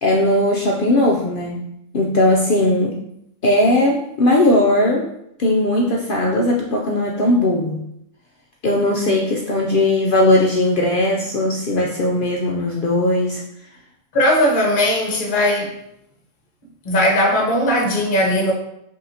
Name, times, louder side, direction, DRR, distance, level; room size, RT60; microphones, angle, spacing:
voice 1, 0.0-1.7 1.9-3.0 3.4-5.1 5.4-7.8 8.6-13.4, left 1 dB, 70° left, -2 dB, 0.5 m, -18 dB
voice 2, 14.1-15.7 16.8-18.5, left 1 dB, 40° left, -2 dB, 1.0 m, -18 dB
5.5 x 2.8 x 2.7 m, 0.77 s
omnidirectional pair, 1.4 m